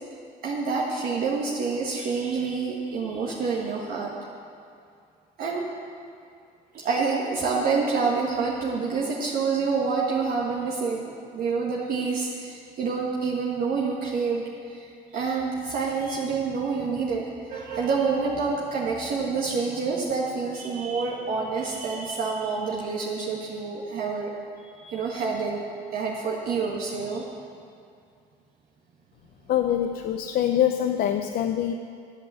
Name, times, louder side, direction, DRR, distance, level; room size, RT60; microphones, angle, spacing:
voice 1, 0.4-4.1 5.4-5.7 6.7-14.4 14.7-17.2 17.5-24.3 24.6-25.6 25.9-27.2, right 4 dB, 60° right, -4 dB, 1.5 m, -27 dB
voice 2, 29.5-31.7, left 10 dB, 65° left, 6 dB, 0.6 m, -24 dB
10.5 x 8.4 x 7.5 m, 2.4 s
cardioid pair, 110°, 17 cm